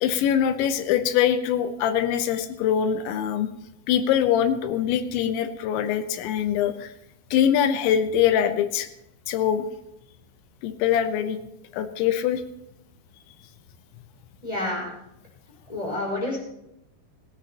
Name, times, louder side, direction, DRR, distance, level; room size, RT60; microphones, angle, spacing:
voice 1, 0.0-3.5 3.9-6.9 7.3-8.9 9.3-9.6 10.6-11.4 11.7-12.4, left 9 dB, 80° left, 9 dB, 3.1 m, -23 dB
voice 2, 14.4-14.9 15.7-16.4, left 1 dB, 10° left, -2 dB, 4.8 m, -28 dB
19.0 x 16.0 x 2.9 m, 0.82 s
omnidirectional pair, 5.4 m